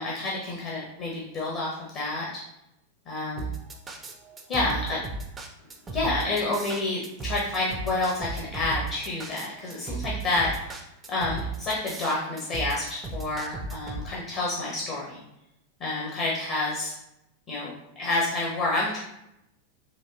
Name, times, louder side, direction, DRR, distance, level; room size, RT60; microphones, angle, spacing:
voice 1, 0.0-2.2 3.1-3.5 4.5-5.0 5.9-10.8 11.1-15.2 15.8-16.9 17.5-17.7 18.0-19.0, left 2 dB, 35° left, -4 dB, 0.9 m, -29 dB
sound 1, 3.4-14.0, right 4 dB, 20° right, 0.5 m, -35 dB
4.0 x 2.6 x 2.3 m, 0.84 s
figure-of-eight pair, 90°, 0 cm